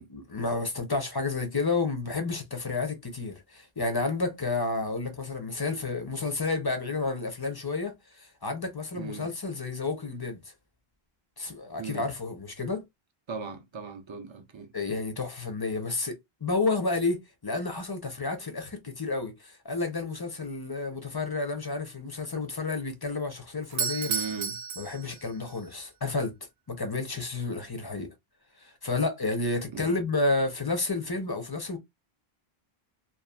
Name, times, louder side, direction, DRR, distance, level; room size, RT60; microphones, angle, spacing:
voice 1, 0.0-10.4 11.4-12.8 14.7-24.1 24.8-26.3 26.7-28.1 28.6-31.8, left 3 dB, 30° left, 0.5 m, -31 dB
voice 2, 8.9-9.3 11.8-12.1 13.3-14.7 24.0-24.6 29.7-30.0, right 5 dB, 45° right, 0.4 m, -38 dB
Doorbell, 23.6-25.6, right 6 dB, 85° right, 0.8 m, -32 dB
2.8 x 2.3 x 2.3 m
omnidirectional pair, 1.0 m